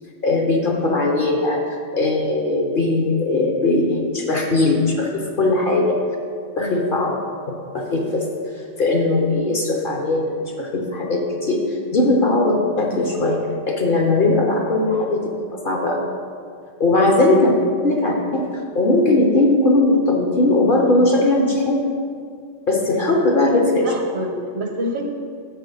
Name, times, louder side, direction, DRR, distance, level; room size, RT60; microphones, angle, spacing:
voice 1, 0.2-6.0 6.6-7.2 7.7-8.3 8.8-11.6 11.9-13.4 13.7-15.2 15.5-16.1 16.8-17.5 17.8-18.4 18.7-21.8 22.7-23.9, left 2 dB, 50° left, 0 dB, 0.8 m, -19 dB
voice 2, 23.4-25.1, right 1 dB, 60° right, 1 dB, 1.0 m, -28 dB
7.2 x 4.1 x 5.4 m, 2.2 s
omnidirectional pair, 1.3 m